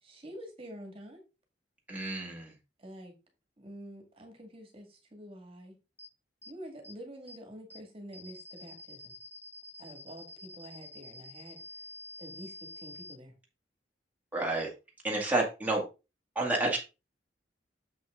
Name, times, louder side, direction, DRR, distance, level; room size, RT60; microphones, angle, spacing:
voice 1, 0.0-1.2 2.8-3.1 3.6-5.7 6.5-9.1 9.8-11.6 12.2-13.3, equal, 35° right, 3 dB, 2.1 m, -47 dB
voice 2, 1.9-2.5 14.3-14.7 15.0-15.8 16.4-16.8, right 2 dB, 10° right, -2 dB, 2.1 m, -29 dB
sound 1, 6.0-6.1 6.4-6.5 6.8-6.9 7.3-7.4 7.7-7.8 8.1-13.1, left 1 dB, 10° left, 2.4 m, -47 dB
7.5 x 6.0 x 3.7 m, 0.28 s
head